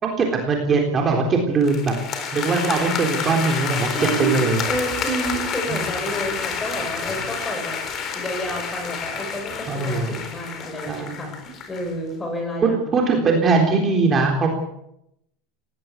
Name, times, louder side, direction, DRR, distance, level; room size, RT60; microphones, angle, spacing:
voice 1, 0.0-1.9 2.3-3.9 4.2-4.6 5.7-5.8 9.7-10.1 10.9-11.2 12.6-14.5, right 4 dB, 20° right, 2 dB, 3.8 m, -21 dB
sound 1, 1.6-11.9, left 6 dB, 30° left, 4.0 m, -29 dB
voice 2, 2.6-3.0 3.4-3.6 3.9-7.8 8.1-12.9, right 1 dB, 15° left, 4 dB, 6.7 m, -30 dB
19.0 x 18.5 x 8.5 m, 0.78 s
supercardioid pair, 155°, 0 cm